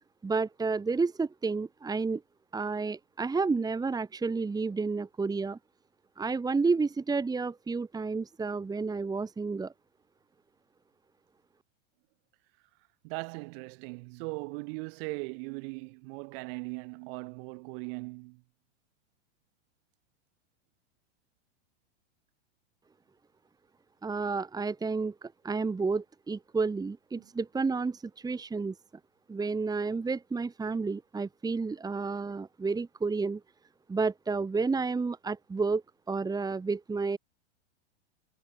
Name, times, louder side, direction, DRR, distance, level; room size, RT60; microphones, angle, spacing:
voice 1, 0.2-2.2 2.5-5.6 6.2-9.7 24.0-28.7 29.3-33.4 33.9-35.8 36.1-37.2, right 4 dB, 10° right, 1.8 m, -31 dB
voice 2, 13.0-18.4 27.2-27.3, right 33 dB, 50° right, 7.6 m, -39 dB
hypercardioid pair, 110°, 35 cm